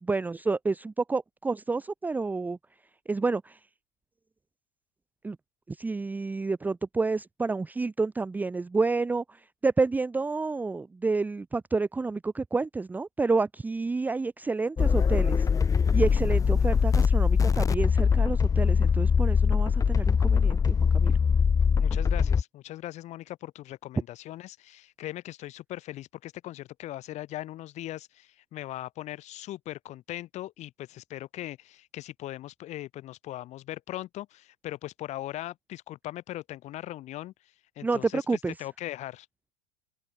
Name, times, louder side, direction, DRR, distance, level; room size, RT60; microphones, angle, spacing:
voice 1, 0.0-2.6 3.1-3.6 5.2-5.4 5.7-15.5 15.9-21.2 37.8-38.5, right 3 dB, 10° right, 0.8 m, -29 dB
sound 1, 14.8-22.4, left 6 dB, 20° left, 1.6 m, -22 dB
voice 2, 21.8-37.3 37.8-38.2 38.6-39.3, left 15 dB, 45° left, 5.9 m, -39 dB
open air
supercardioid pair, 125°, 16 cm